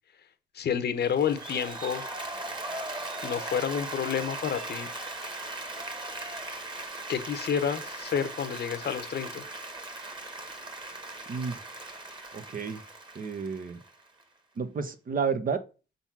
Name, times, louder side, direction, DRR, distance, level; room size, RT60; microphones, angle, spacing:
voice 1, 0.5-2.0 3.2-4.9 7.1-9.4, left 8 dB, 55° left, 1.0 m, -29 dB
Applause, 1.0-14.2, right 2 dB, 25° right, 1.7 m, -39 dB
voice 2, 11.3-11.6 12.3-12.8 13.1-13.8 14.6-15.6, right 5 dB, 45° right, 1.1 m, -31 dB
5.7 x 3.9 x 6.0 m
cardioid pair, 90°, 20 cm